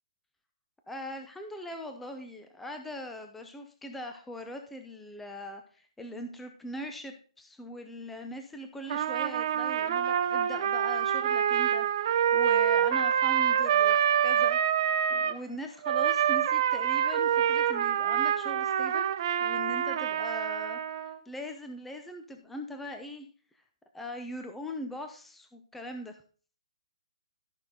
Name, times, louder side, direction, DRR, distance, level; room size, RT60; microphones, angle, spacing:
voice 1, 0.9-19.1 19.4-20.8 21.1-23.3 23.9-26.2, left 1 dB, 5° left, 5 dB, 0.6 m, -41 dB
Trumpet, 8.9-15.4 15.8-21.2, right 9 dB, 40° right, 0.7 m, -26 dB
13.0 x 5.8 x 3.8 m, 0.41 s
hypercardioid pair, 160°, 4 cm